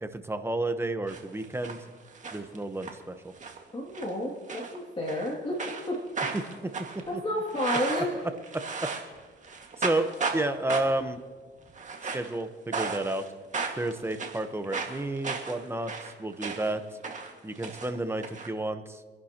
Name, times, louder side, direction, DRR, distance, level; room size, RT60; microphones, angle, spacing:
voice 1, 0.0-1.8 2.3-3.3 6.3-6.7 8.1-8.2 8.5-8.9 9.8-11.2 12.1-13.3 13.7-16.8 17.4-19.0, right 2 dB, 10° right, 8 dB, 1.1 m, -31 dB
sound 1, 1.1-1.8 2.1-2.9 3.4-3.6 3.9-4.1 4.5-5.3 5.6-9.2 9.4-10.4 10.7-11.1 11.7-12.3 12.7-13.3 13.5-16.8 17.0-18.5, right 4 dB, 40° right, 2.0 m, -35 dB
voice 2, 3.7-5.6 5.9-6.0 7.1-8.1, left 1 dB, 25° left, -4 dB, 2.6 m, -31 dB
27.0 x 11.0 x 3.0 m, 1.5 s
cardioid pair, 90°, 20 cm